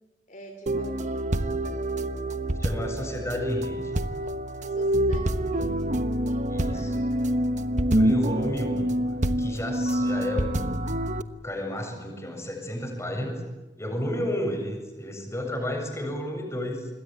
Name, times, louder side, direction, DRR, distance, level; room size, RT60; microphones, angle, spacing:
voice 1, 0.3-1.3 4.7-5.9 6.7-7.2, equal, 45° left, 4 dB, 3.2 m, -46 dB
sound 1, 0.7-11.2, right 1 dB, 45° right, 1.2 m, -26 dB
voice 2, 2.6-3.9 6.5-7.0 7.9-8.9 9.4-10.9 11.4-13.4 13.8-16.9, left 1 dB, 15° left, 3 dB, 7.4 m, -32 dB
26.5 x 22.0 x 9.1 m, 1.1 s
head